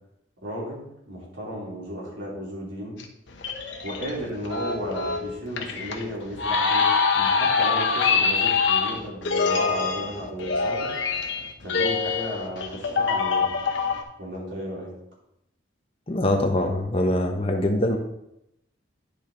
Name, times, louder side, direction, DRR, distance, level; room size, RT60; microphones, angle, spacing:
voice 1, 0.4-3.0 3.8-10.9 11.6-13.5 14.2-14.9, equal, 80° right, -5 dB, 3.5 m, -34 dB
sound 1, 3.0-14.0, left 5 dB, 75° left, 1.0 m, -24 dB
voice 2, 16.1-18.0, left 1 dB, 30° left, 4 dB, 0.9 m, -23 dB
10.5 x 5.1 x 3.8 m, 0.82 s
head